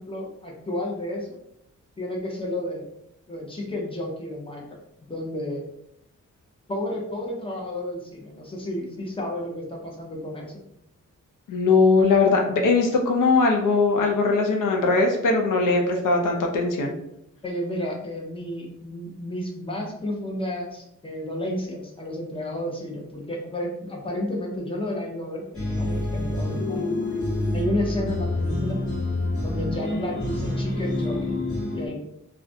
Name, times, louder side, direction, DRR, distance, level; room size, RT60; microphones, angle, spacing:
voice 1, 0.0-1.4 2.0-2.8 3.3-5.6 6.7-10.6 17.4-26.9 27.5-28.8 29.4-31.4 31.7-32.0, left 1 dB, 20° left, -2 dB, 0.5 m, -32 dB
voice 2, 11.5-16.9, left 3 dB, 80° left, 2 dB, 0.5 m, -20 dB
sound 1, 25.5-31.9, left 2 dB, 45° left, 0.9 m, -27 dB
2.3 x 2.1 x 2.6 m, 0.79 s
wide cardioid pair, 160°, 31 cm